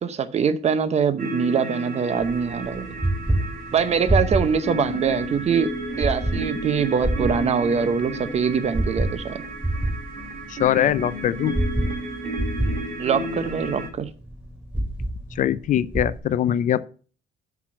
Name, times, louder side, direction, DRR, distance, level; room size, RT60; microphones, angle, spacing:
voice 1, 0.0-2.9 3.7-5.7 6.0-9.4 13.0-14.1, right 6 dB, 40° right, 0.8 m, -23 dB
sound 1, 1.2-13.9, right 1 dB, 55° right, 2.5 m, -33 dB
sound 2, 2.2-16.2, right 1 dB, 5° right, 3.3 m, -28 dB
voice 2, 10.5-11.5 15.3-16.9, left 11 dB, 50° left, 0.4 m, -22 dB
6.0 x 5.9 x 6.2 m
cardioid pair, 110°, 17 cm